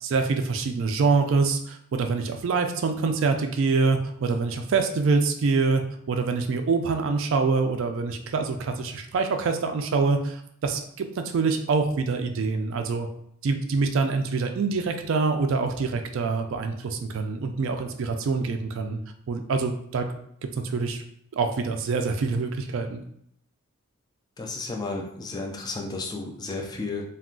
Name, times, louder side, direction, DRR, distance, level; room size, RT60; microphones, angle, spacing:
voice 1, 0.0-13.1 13.4-19.0 19.3-20.1 20.4-21.0 21.3-23.0, right 4 dB, 60° right, 5 dB, 0.3 m, -25 dB
voice 2, 24.4-27.0, left 3 dB, 20° left, 1 dB, 0.3 m, -33 dB
2.3 x 2.3 x 3.6 m, 0.71 s
head